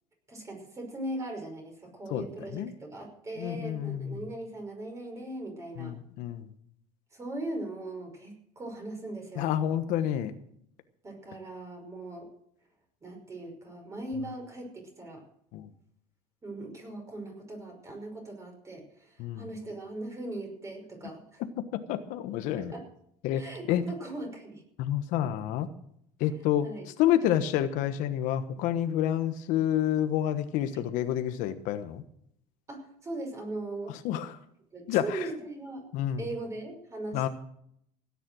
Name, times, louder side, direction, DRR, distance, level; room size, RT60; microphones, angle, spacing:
voice 1, 0.3-5.9 7.1-9.5 11.0-12.3 13.0-15.3 16.4-21.4 22.6-22.9 23.4-24.6 26.6-26.8 30.7-30.8 32.7-33.9 34.7-35.9 36.2-37.3, right 2 dB, 20° right, 3 dB, 5.6 m, -39 dB
voice 2, 3.4-4.2 5.8-6.5 9.4-10.3 15.5-15.7 19.2-19.5 21.7-22.7 23.2-23.8 24.8-25.7 26.2-26.7 27.0-32.0 34.0-34.4 34.9-35.3 35.9-36.2 37.1-37.3, left 11 dB, 70° left, 9 dB, 1.3 m, -29 dB
17.0 x 9.9 x 6.3 m, 0.69 s
cardioid pair, 135°, 14 cm